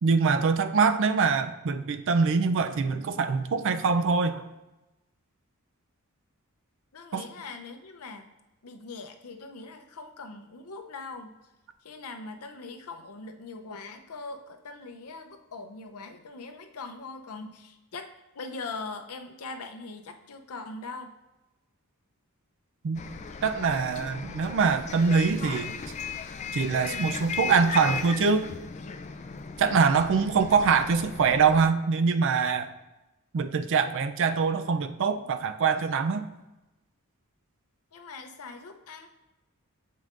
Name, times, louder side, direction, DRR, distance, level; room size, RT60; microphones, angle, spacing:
voice 1, 0.0-4.5 7.1-7.3 22.8-23.0 23.4-25.8 26.5-28.5 29.6-32.7 33.3-36.3, right 5 dB, 60° right, 9 dB, 0.4 m, -24 dB
voice 2, 6.9-8.3 8.6-11.4 11.8-21.1 37.9-39.1, left 3 dB, 80° left, 6 dB, 0.6 m, -41 dB
Bus, 22.9-31.7, left 5 dB, 30° left, 0.3 m, -37 dB
7.6 x 5.3 x 2.5 m, 1.0 s
head